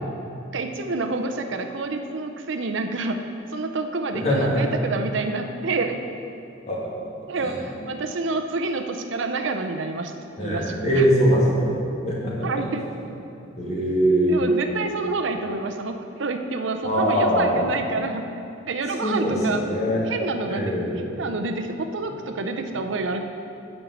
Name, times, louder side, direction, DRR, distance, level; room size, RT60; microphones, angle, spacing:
voice 1, 0.5-3.2 3.5-6.0 7.3-10.1 10.4-11.1 12.4-12.8 14.3-18.4 18.7-19.6 20.1-20.8 21.2-23.2, right 3 dB, 70° right, 5 dB, 0.6 m, -28 dB
voice 2, 4.1-4.6 6.7-6.8 7.4-7.5 10.4-11.7 12.1-12.5 13.6-14.4 16.8-17.6 19.0-20.0 20.5-21.0, equal, 35° left, -6 dB, 2.1 m, -22 dB
8.8 x 5.3 x 7.3 m, 2.7 s
head